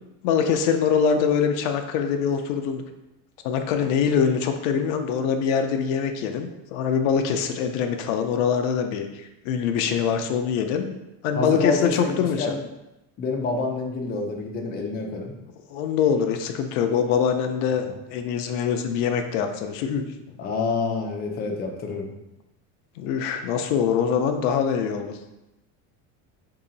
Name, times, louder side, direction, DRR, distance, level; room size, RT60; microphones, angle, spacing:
voice 1, 0.2-2.8 3.4-10.9 11.2-12.5 15.7-17.9 18.1-20.0 23.0-25.1, left 7 dB, 80° left, 6 dB, 0.6 m, -24 dB
voice 2, 11.3-12.6 13.2-15.3 20.4-22.1, left 3 dB, 25° left, 1 dB, 0.4 m, -27 dB
3.0 x 2.8 x 3.9 m, 0.94 s
cardioid pair, 135°, 40 cm